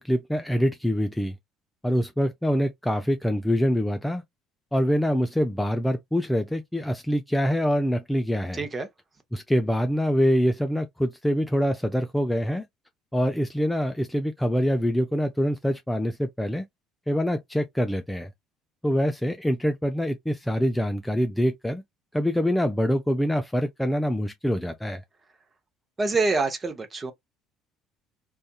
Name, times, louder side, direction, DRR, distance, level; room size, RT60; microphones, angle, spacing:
voice 1, 0.0-1.4 1.8-4.2 4.7-8.6 9.3-12.6 13.1-16.6 17.1-18.3 18.8-21.8 22.1-25.0, equal, 5° left, 0.4 m, -25 dB
voice 2, 8.5-8.9 26.0-27.1, right 3 dB, 30° right, 0.8 m, -26 dB
2.6 x 2.4 x 2.3 m
hypercardioid pair, 65°, 0 cm